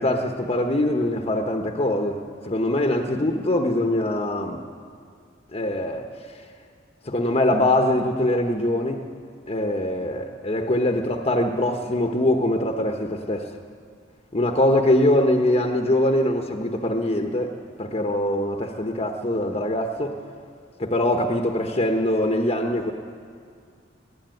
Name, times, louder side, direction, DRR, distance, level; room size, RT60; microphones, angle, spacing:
voice 1, 0.0-4.6 5.5-6.0 7.0-9.0 9.5-13.5 14.3-20.2 20.8-22.9, left 1 dB, 35° left, 4 dB, 1.1 m, -23 dB
19.5 x 15.5 x 9.2 m, 2.1 s
head